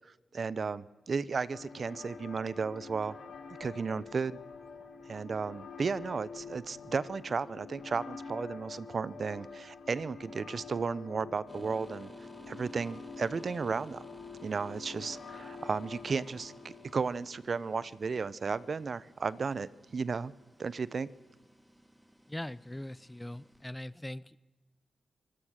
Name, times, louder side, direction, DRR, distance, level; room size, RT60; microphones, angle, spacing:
voice 1, 0.3-3.1 3.6-4.4 5.1-12.1 12.5-14.1 14.4-20.3 20.6-21.1, right 5 dB, 55° right, 19 dB, 0.7 m, -34 dB
sound 1, 1.5-17.5, left 5 dB, 65° left, 3.2 m, -47 dB
sound 2, 11.5-23.7, right 1 dB, 5° right, 1.7 m, -56 dB
voice 2, 22.3-24.4, left 1 dB, 10° left, 20 dB, 0.6 m, -41 dB
25.0 x 16.5 x 6.5 m, 1.2 s
cardioid pair, 75°, 0 cm